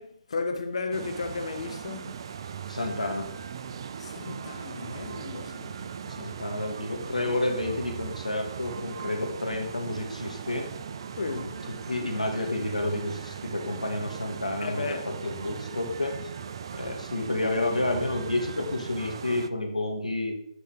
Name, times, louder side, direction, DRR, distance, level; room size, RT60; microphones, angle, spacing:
voice 1, 0.0-2.3 4.0-6.3 11.2-11.7 14.6-15.0, left 4 dB, 55° left, 1.0 m, -35 dB
sound 1, 0.9-19.5, right 7 dB, 40° right, 0.5 m, -39 dB
voice 2, 2.7-3.3 6.1-10.7 11.7-16.2 16.8-20.4, left 2 dB, 80° left, 2.1 m, -30 dB
8.6 x 5.4 x 4.9 m
figure-of-eight pair, 140°, 4 cm